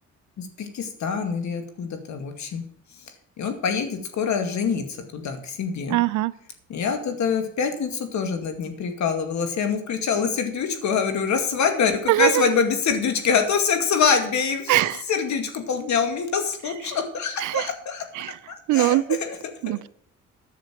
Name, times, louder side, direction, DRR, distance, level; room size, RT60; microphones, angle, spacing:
voice 1, 0.4-2.6 3.4-6.0 6.7-18.3 18.7-19.4 19.7-19.8, left 6 dB, 65° left, 6 dB, 2.2 m, -25 dB
voice 2, 5.9-6.3 12.1-12.4 14.7-15.0 17.4-17.7 18.2-18.3 18.7-19.2 19.6-19.9, right 16 dB, 80° right, 17 dB, 0.6 m, -21 dB
10.5 x 6.9 x 7.6 m, 0.62 s
cardioid pair, 90°, 30 cm